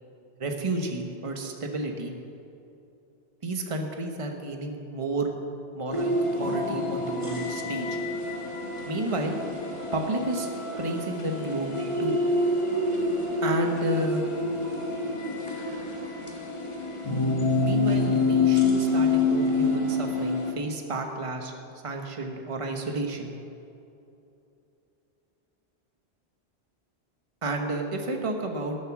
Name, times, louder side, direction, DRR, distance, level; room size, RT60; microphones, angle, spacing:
voice 1, 0.4-2.1 3.4-5.3 5.7-8.0 8.9-9.4 9.9-10.5 10.8-12.2 13.4-14.2 17.6-21.5 21.8-23.3 27.4-28.8, right 2 dB, 30° right, 3 dB, 1.1 m, -31 dB
sound 1, 5.9-20.5, left 2 dB, 30° left, 1.4 m, -27 dB
19.0 x 7.5 x 6.0 m, 2.7 s
omnidirectional pair, 1.1 m